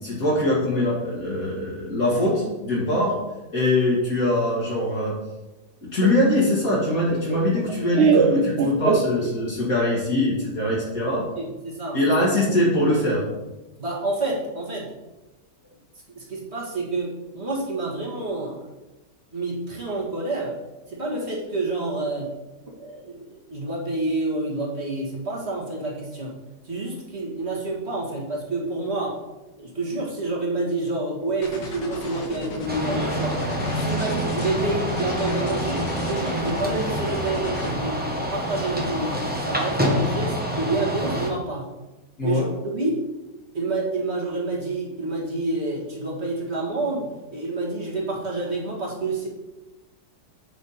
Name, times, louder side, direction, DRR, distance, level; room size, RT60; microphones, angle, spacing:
voice 1, 0.0-3.1 3.5-5.2 5.8-11.2 11.9-13.2 42.2-42.5, left 1 dB, 50° left, -5 dB, 2.3 m, -22 dB
Laughter, 6.0-9.7, right 5 dB, 65° right, 0.6 m, -23 dB
voice 2, 11.4-12.0 13.8-14.9 16.1-18.6 19.3-20.5 20.9-22.3 22.7-26.3 26.6-29.2 29.6-33.4 33.8-41.7 42.2-42.9 43.5-49.3, right 2 dB, 40° right, -4 dB, 2.1 m, -28 dB
sound 1, 31.4-37.7, left 2 dB, 75° left, 2.0 m, -35 dB
sound 2, 32.7-41.3, equal, 5° right, 1.0 m, -27 dB
8.3 x 5.8 x 4.3 m, 1.0 s
omnidirectional pair, 1.9 m